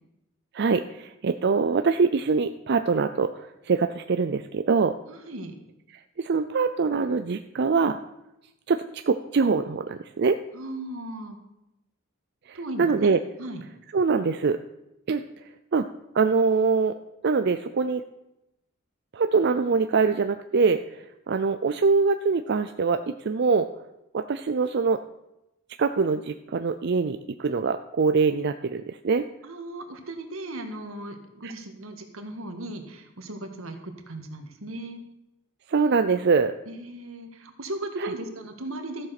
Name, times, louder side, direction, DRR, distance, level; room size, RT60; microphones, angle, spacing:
voice 1, 0.5-3.3 3.7-4.9 6.2-8.0 8.7-10.4 12.5-13.2 13.9-14.6 15.1-15.2 15.7-15.9 16.1-16.9 17.2-18.0 19.1-20.8 21.3-23.7 24.1-25.0 25.8-29.2 31.4-31.5 35.7-36.5 38.0-38.1, right 4 dB, 55° right, 8 dB, 0.5 m, -23 dB
voice 2, 5.1-5.6 10.5-11.4 12.5-13.1 13.4-13.6 29.4-35.0 36.7-39.1, right 1 dB, 85° right, 5 dB, 1.7 m, -37 dB
13.5 x 7.4 x 5.9 m, 0.90 s
head